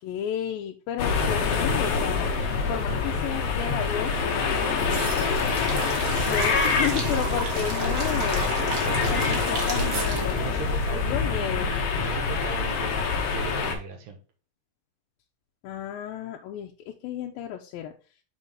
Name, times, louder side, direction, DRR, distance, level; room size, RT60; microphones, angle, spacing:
voice 1, 0.0-2.4 2.7-5.7 6.3-8.5 9.1-10.6 10.9-11.7 15.6-17.9, left 10 dB, 90° left, 2 dB, 2.5 m, -33 dB
sound 1, 1.0-13.8, left 4 dB, 60° left, 1.7 m, -26 dB
sound 2, 4.4-11.4 11.7-11.8, right 4 dB, 65° right, 1.1 m, -34 dB
voice 2, 5.7-6.0 6.3-7.2 8.9-14.2, right 6 dB, 80° right, 4 dB, 3.0 m, -38 dB
6.3 x 5.3 x 3.6 m, 0.36 s
omnidirectional pair, 4.1 m